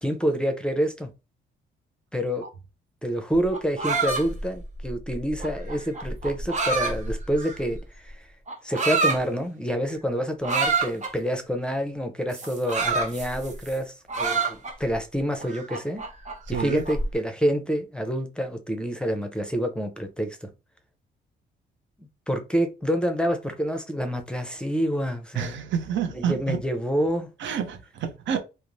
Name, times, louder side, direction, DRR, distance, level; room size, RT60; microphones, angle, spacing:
voice 1, 0.0-1.1 2.1-2.5 3.0-8.3 8.6-16.0 16.5-20.5 22.0-25.6 26.1-27.3, equal, 5° left, 0.5 m, -27 dB
sound 1, 3.3-7.8 8.5-9.2 10.4-11.1 12.3-13.8 14.1-14.9 15.4-17.1, right 4 dB, 35° right, 0.9 m, -27 dB
voice 2, 16.5-16.8 25.3-26.6 27.4-28.4, right 8 dB, 70° right, 0.6 m, -28 dB
2.5 x 2.0 x 3.0 m
cardioid pair, 90°, 20 cm